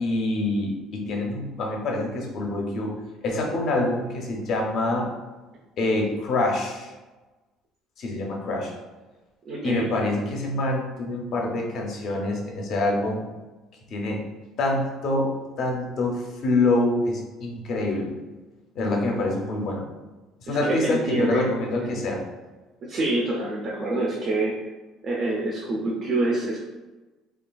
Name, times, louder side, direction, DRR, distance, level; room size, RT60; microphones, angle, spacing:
voice 1, 0.0-3.0 3.2-5.1 5.8-6.9 8.0-8.7 9.6-13.3 13.9-14.3 14.6-18.1 18.8-19.8 20.4-22.2, left 2 dB, 45° left, 0 dB, 0.5 m, -26 dB
voice 2, 9.5-9.9 20.5-21.6 22.8-24.5 25.0-26.6, right 2 dB, 35° right, -3 dB, 0.4 m, -26 dB
3.1 x 2.3 x 2.2 m, 1.2 s
cardioid pair, 165°, 0 cm